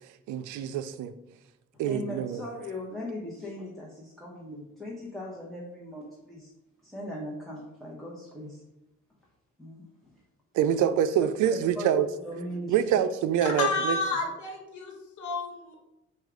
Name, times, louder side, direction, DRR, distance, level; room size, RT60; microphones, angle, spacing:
voice 1, 0.3-1.1 1.8-2.4 10.5-12.1 12.7-13.7, right 9 dB, 80° right, 12 dB, 0.4 m, -25 dB
voice 2, 1.8-6.5 6.8-8.6 9.6-10.2 11.5-13.0, left 1 dB, ahead, -4 dB, 0.9 m, -39 dB
voice 3, 13.4-15.7, left 3 dB, 75° left, 1 dB, 1.2 m, -31 dB
4.5 x 2.4 x 4.8 m, 0.89 s
cardioid pair, 90°, 30 cm